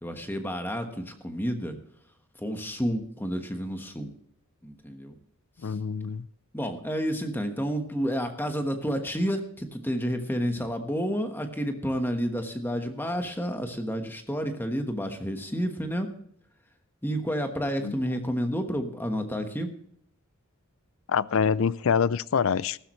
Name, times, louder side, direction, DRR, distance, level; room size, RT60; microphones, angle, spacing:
voice 1, 0.0-1.8 2.4-4.1 4.6-5.2 5.6-5.8 6.5-16.1 17.0-19.7, equal, 10° left, 6 dB, 1.3 m, -30 dB
voice 2, 5.6-6.3 17.8-17.9 21.1-22.8, left 6 dB, 65° left, 19 dB, 0.4 m, -25 dB
14.5 x 12.5 x 3.1 m, 0.69 s
head